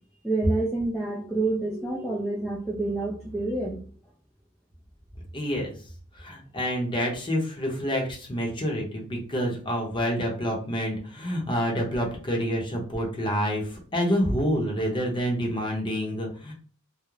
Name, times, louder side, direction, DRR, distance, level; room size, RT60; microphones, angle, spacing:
voice 1, 0.2-3.8, right 2 dB, ahead, -5 dB, 0.3 m, -28 dB
voice 2, 5.3-5.8 6.1-16.5, equal, 20° left, -1 dB, 0.7 m, -28 dB
2.4 x 2.0 x 3.0 m, 0.40 s
head